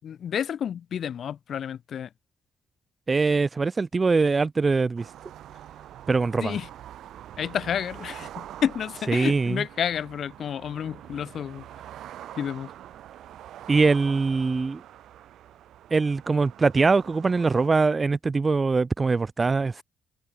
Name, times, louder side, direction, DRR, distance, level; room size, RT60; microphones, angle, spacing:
voice 1, 0.0-2.1 6.4-6.7 7.4-11.6 12.3-12.7, left 9 dB, 60° left, 6.5 m, -30 dB
voice 2, 3.1-5.1 6.1-6.5 9.1-9.6 13.7-14.8 15.9-19.8, right 4 dB, 30° right, 5.4 m, -22 dB
sound 1, 5.0-17.7, right 12 dB, 75° right, 7.2 m, -44 dB
open air
cardioid pair, 95°, 0 cm